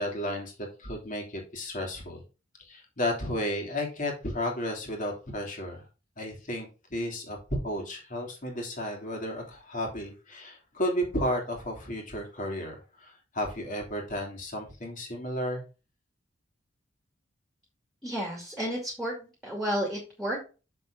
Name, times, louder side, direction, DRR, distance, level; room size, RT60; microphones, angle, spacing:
voice 1, 0.0-2.2 2.6-5.9 6.2-7.4 7.6-15.6, left 1 dB, 40° left, 1 dB, 3.0 m, -33 dB
voice 2, 18.0-20.4, equal, ahead, -1 dB, 2.4 m, -32 dB
7.0 x 6.9 x 3.8 m, 0.31 s
head